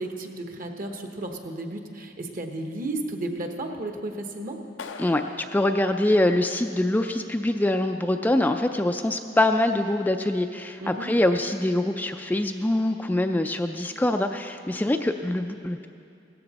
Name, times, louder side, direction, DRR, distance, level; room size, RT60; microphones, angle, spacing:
voice 1, 0.0-4.6 10.8-11.1, right 2 dB, 50° right, 4 dB, 1.1 m, -33 dB
Clapping, 4.8-6.8, left 5 dB, 90° left, 0.6 m, -43 dB
voice 2, 5.0-15.9, left 1 dB, 10° left, 5 dB, 0.3 m, -24 dB
16.5 x 13.5 x 4.1 m, 2.5 s
head